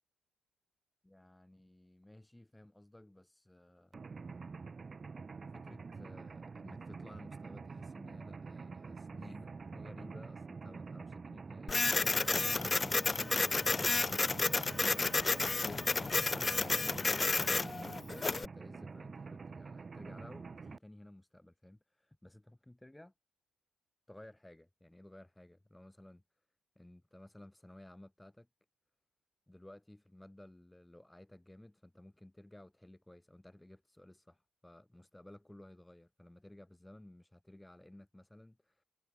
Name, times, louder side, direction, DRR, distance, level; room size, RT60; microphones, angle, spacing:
voice 1, 1.0-4.0 5.5-15.1 16.0-23.1 24.1-26.2 26.8-28.5 29.5-38.8, left 1 dB, 10° left, 5.7 m, -56 dB
Mechanisms, 3.9-20.8, right 4 dB, 35° right, 0.9 m, -47 dB
Printer, 11.7-18.5, left 3 dB, 25° left, 0.3 m, -31 dB
cardioid pair, 90°, 0 cm